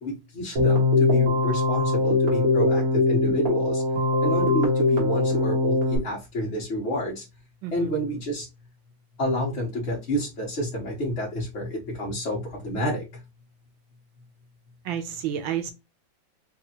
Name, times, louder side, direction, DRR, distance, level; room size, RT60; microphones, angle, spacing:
voice 1, 0.0-3.8 4.2-7.2 7.7-8.5 9.2-13.0, equal, 45° left, 1.1 m, -29 dB
Keyboard (musical), 0.6-6.0, left 2 dB, 45° right, 1.8 m, -21 dB
voice 2, 14.8-15.7, right 10 dB, 80° right, 1.3 m, -30 dB
4.6 x 2.8 x 2.8 m
omnidirectional pair, 2.2 m